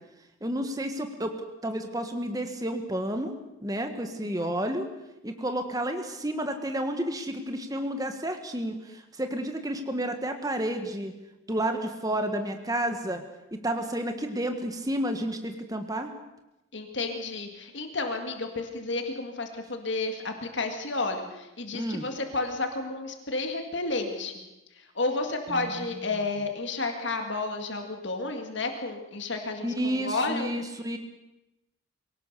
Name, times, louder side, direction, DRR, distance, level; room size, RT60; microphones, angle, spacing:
voice 1, 0.4-1.4 1.6-3.3 3.6-4.9 5.2-11.1 11.5-13.2 13.5-16.1 21.7-22.1 25.5-26.2 29.6-31.0, right 1 dB, 15° right, 6 dB, 1.4 m, -31 dB
voice 2, 16.7-24.4 25.0-30.5, left 3 dB, 60° left, 4 dB, 2.0 m, -31 dB
23.0 x 18.0 x 6.8 m, 0.96 s
head